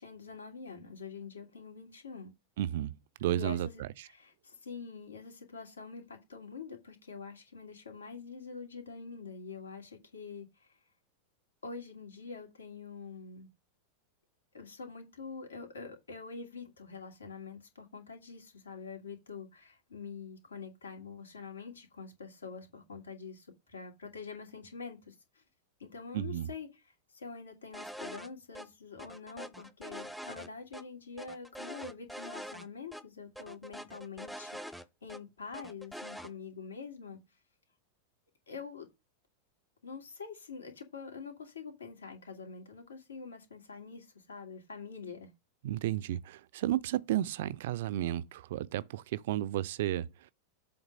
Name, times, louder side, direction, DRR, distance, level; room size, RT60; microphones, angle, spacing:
voice 1, 0.0-2.3 3.3-10.8 11.6-13.5 14.5-25.4 25.8-34.6 35.0-37.2 38.5-38.9 39.8-45.3, left 5 dB, 70° left, 2.7 m, -45 dB
voice 2, 2.6-2.9 3.2-3.9 26.1-26.5 45.6-50.1, right 13 dB, 55° right, 0.4 m, -32 dB
sound 1, 27.7-28.3 28.5-28.7 29.0-30.8 31.2-32.7 32.9-33.0 33.4-35.2 35.5-36.3, equal, ahead, 0.7 m, -44 dB
7.8 x 3.9 x 6.1 m
figure-of-eight pair, 90°, 0 cm